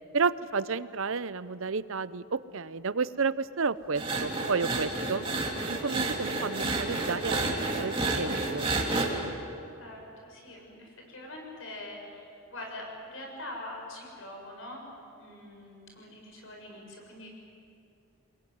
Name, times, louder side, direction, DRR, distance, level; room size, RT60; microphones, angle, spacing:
voice 1, 0.1-5.3 5.7-8.7, right 4 dB, 65° right, 15 dB, 0.7 m, -31 dB
sound 1, 3.9-9.1, right 2 dB, 25° right, 3.1 m, -30 dB
voice 2, 9.8-14.8 15.2-17.3, left 1 dB, 65° left, 0 dB, 7.4 m, -43 dB
28.0 x 21.5 x 9.5 m, 2.5 s
head